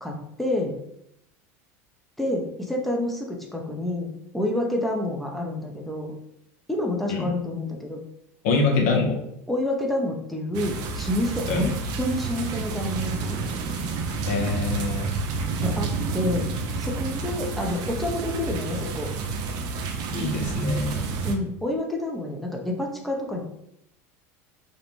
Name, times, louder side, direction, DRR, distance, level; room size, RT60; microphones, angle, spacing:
voice 1, 0.0-0.7 2.2-4.1 4.3-6.1 6.7-8.0 8.7-8.9 9.5-11.7 12.0-13.4 15.6-16.5 16.8-19.1 21.2-23.4, left 1 dB, ahead, 0 dB, 0.5 m, -28 dB
voice 2, 8.4-9.2 11.5-11.7 14.3-15.1 20.1-21.1, left 3 dB, 75° left, 2 dB, 0.6 m, -24 dB
sound 1, 10.5-21.4, right 4 dB, 55° right, 0.4 m, -29 dB
2.5 x 2.0 x 2.9 m, 0.75 s
supercardioid pair, 100°, 8 cm